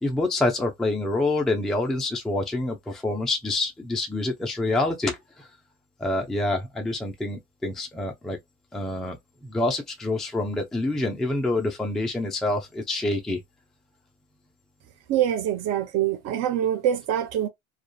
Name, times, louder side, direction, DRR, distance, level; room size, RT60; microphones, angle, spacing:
voice 1, 0.0-5.5 6.0-8.4 8.7-9.2 9.4-13.4, left 2 dB, ahead, 0.4 m, -27 dB
voice 2, 15.1-17.5, right 10 dB, 35° right, 0.7 m, -24 dB
2.5 x 2.4 x 2.3 m
hypercardioid pair, 90°, 43 cm